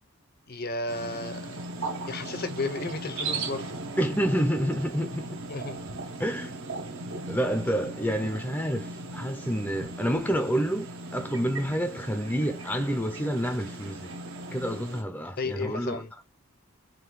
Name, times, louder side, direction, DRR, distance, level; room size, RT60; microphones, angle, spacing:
voice 1, 0.5-1.6 2.0-3.7 5.5-5.8 15.4-16.1, left 3 dB, 45° left, 0.7 m, -33 dB
sound 1, 0.9-15.0, right 2 dB, 60° right, 1.0 m, -38 dB
voice 2, 4.0-5.2 6.2-6.5 7.3-10.8 11.1-14.1 14.5-16.2, equal, 5° left, 0.6 m, -28 dB
3.9 x 3.2 x 3.1 m
head